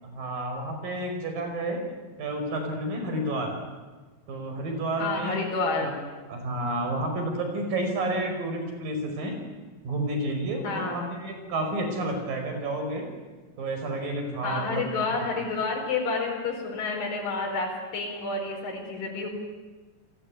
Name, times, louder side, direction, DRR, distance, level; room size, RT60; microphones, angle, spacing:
voice 1, 0.0-1.8 2.2-3.6 4.3-5.4 5.8-5.9 6.3-9.3 9.8-13.1 13.6-14.8, right 1 dB, 75° right, 4 dB, 6.8 m, -30 dB
voice 2, 5.0-5.9 10.6-11.1 14.4-19.3, left 3 dB, 75° left, -1 dB, 6.2 m, -29 dB
30.0 x 20.0 x 9.7 m, 1.3 s
omnidirectional pair, 4.0 m